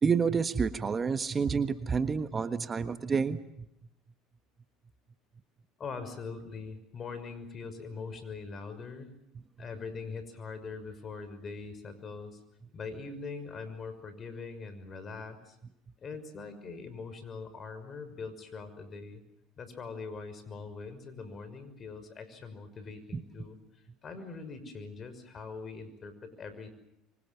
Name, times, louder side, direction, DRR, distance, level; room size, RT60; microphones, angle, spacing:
voice 1, 0.0-3.7 23.1-23.2, right 5 dB, 30° right, 10 dB, 1.4 m, -29 dB
voice 2, 5.8-9.1 9.6-12.4 12.7-15.6 16.0-19.2 19.6-23.6 24.0-26.8, left 4 dB, 40° left, 11 dB, 6.0 m, -42 dB
26.5 x 25.0 x 7.1 m, 0.81 s
supercardioid pair, 85°, 0 cm